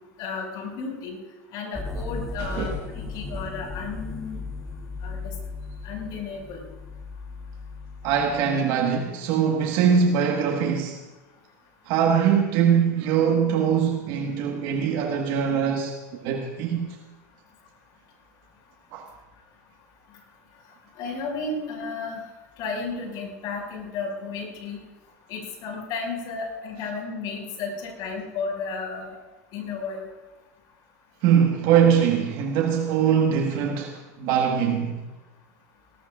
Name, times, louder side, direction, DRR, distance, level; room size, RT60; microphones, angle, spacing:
voice 1, 0.2-1.2 1.5-2.8 3.1-4.4 5.0-5.3 5.8-6.6 21.0-22.2 22.6-24.8 25.3-29.2 29.5-30.0, left 4 dB, 60° left, 6.0 m, -33 dB
sound 1, 1.7-8.5, left 3 dB, 5° left, 2.5 m, -36 dB
voice 2, 8.0-11.0 11.9-16.0 16.2-17.0 18.9-19.0 31.2-35.0, right 7 dB, 60° right, 1.6 m, -22 dB
19.5 x 18.5 x 2.5 m
hypercardioid pair, 100°, 8 cm